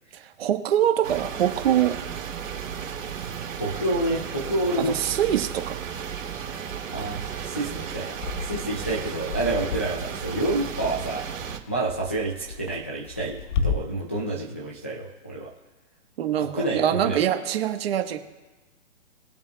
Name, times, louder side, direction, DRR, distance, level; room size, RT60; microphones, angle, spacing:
voice 1, 0.2-2.0 4.8-5.8 16.2-18.2, right 10 dB, 50° right, 6 dB, 1.4 m, -24 dB
sound 1, 1.0-11.6, right 7 dB, 90° right, 1.9 m, -34 dB
voice 2, 3.5-5.0 6.9-11.3 11.7-15.5 16.4-17.2, right 2 dB, 10° left, -6 dB, 0.3 m, -29 dB
sound 2, 8.2-13.7, left 6 dB, 40° left, 0.9 m, -33 dB
21.5 x 7.4 x 2.3 m, 1.2 s
hypercardioid pair, 150°, 38 cm